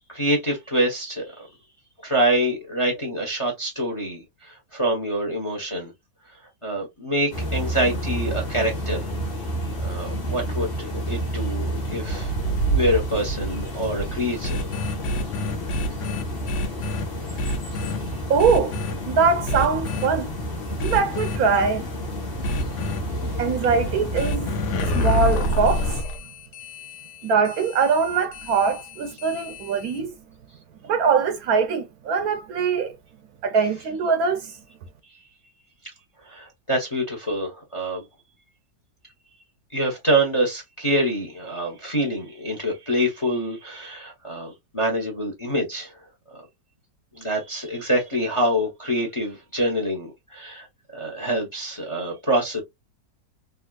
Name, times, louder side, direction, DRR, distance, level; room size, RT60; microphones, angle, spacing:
voice 1, 0.1-1.5 2.0-5.9 6.6-9.1 9.8-12.3 12.7-14.6 23.2-23.3 36.2-38.0 39.7-45.9 46.3-46.4 47.1-50.7 50.9-52.6, right 1 dB, 25° left, 0.7 m, -26 dB
sound 1, 7.3-26.0, right 1 dB, 40° left, 1.3 m, -29 dB
sound 2, 14.4-17.0 17.4-18.0 18.4-18.9 19.5-20.1 20.8-21.4 22.4-23.0 24.1-30.0, equal, 80° left, 1.3 m, -28 dB
voice 2, 18.3-18.7 19.0-20.3 20.8-21.8 23.4-25.9 27.2-30.1 30.8-32.9 33.4-34.5, right 5 dB, 70° right, 1.0 m, -22 dB
3.4 x 2.6 x 2.2 m
omnidirectional pair, 1.8 m